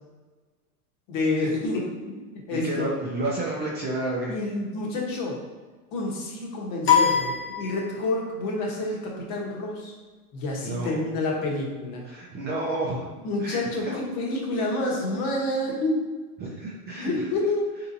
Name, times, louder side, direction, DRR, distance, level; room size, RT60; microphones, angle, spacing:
voice 1, 1.1-1.9 2.3-2.9 4.3-5.4 5.9-9.9 10.3-12.0 13.2-16.1 17.0-17.8, left 2 dB, 45° left, -2 dB, 1.1 m, -28 dB
voice 2, 2.5-4.3 10.6-11.0 12.1-13.1 13.4-14.0 16.4-17.3, right 2 dB, 20° right, -4 dB, 0.5 m, -31 dB
sound 1, 6.8-8.3, left 7 dB, 25° left, 0.9 m, -23 dB
4.2 x 2.8 x 2.6 m, 1.3 s
hypercardioid pair, 110°, 47 cm